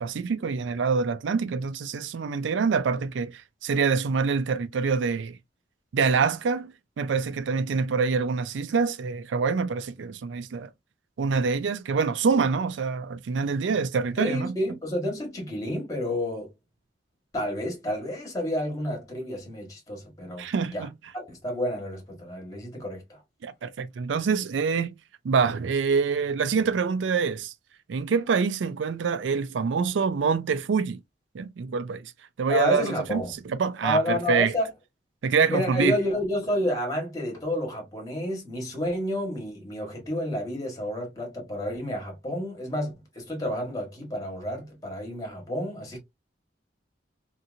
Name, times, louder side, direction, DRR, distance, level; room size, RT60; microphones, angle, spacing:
voice 1, 0.0-5.4 5.9-10.7 11.2-14.5 20.4-20.9 23.4-24.9 25.2-27.5 27.9-31.0 31.3-32.1 32.4-34.5 35.2-36.0, right 5 dB, 90° right, 0.4 m, -26 dB
voice 2, 14.2-16.5 17.3-20.5 20.7-20.9 21.1-23.2 32.5-33.3 33.8-34.7 35.5-46.0, left 1 dB, 20° left, 1.3 m, -30 dB
2.8 x 2.7 x 2.5 m
head